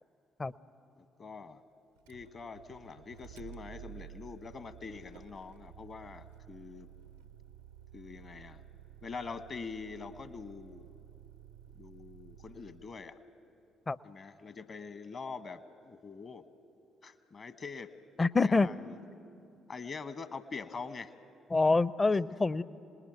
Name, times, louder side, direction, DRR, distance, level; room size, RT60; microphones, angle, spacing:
voice 1, 1.0-1.6 2.1-6.9 7.9-8.6 9.0-10.9 11.8-13.2 14.0-16.5 17.0-17.9 18.4-19.1 19.7-21.1 22.1-22.4, left 4 dB, 45° left, 12 dB, 1.1 m, -44 dB
Motor vehicle (road), 2.0-13.2, right 11 dB, 80° right, 0.5 m, -53 dB
voice 2, 18.2-18.7 21.5-22.6, left 3 dB, 30° left, 19 dB, 0.6 m, -26 dB
26.0 x 20.0 x 9.2 m, 2.7 s
figure-of-eight pair, 45°, 0 cm